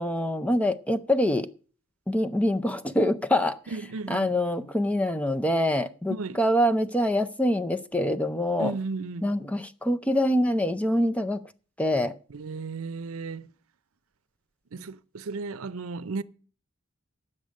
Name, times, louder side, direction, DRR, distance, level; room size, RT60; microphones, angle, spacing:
voice 1, 0.0-1.5 2.1-3.6 4.1-8.8 9.2-11.4 11.8-12.1, left 1 dB, 5° left, 0.5 m, -25 dB
voice 2, 3.7-4.4 6.1-6.4 8.6-9.3 12.3-13.5 14.7-16.2, right 4 dB, 85° right, 0.6 m, -34 dB
9.8 x 8.1 x 6.3 m
head